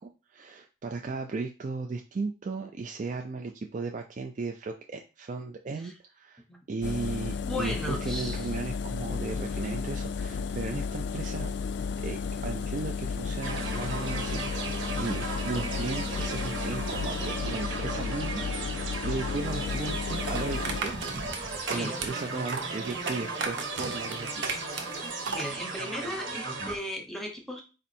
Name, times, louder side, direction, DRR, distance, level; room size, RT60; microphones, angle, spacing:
voice 1, 0.0-6.4 6.7-11.5 12.0-20.9 21.4-24.5, right 3 dB, 40° right, 3 dB, 0.4 m, -36 dB
Engine, 6.8-20.8, left 5 dB, 60° left, 0.3 m, -33 dB
voice 2, 7.1-8.5 21.7-22.0 25.3-27.6, left 1 dB, ahead, 2 dB, 0.8 m, -36 dB
sound 1, 13.4-26.8, right 3 dB, 80° right, 1.2 m, -36 dB
sound 2, 20.2-25.5, right 4 dB, 65° right, 0.8 m, -35 dB
4.3 x 2.6 x 4.1 m, 0.32 s
head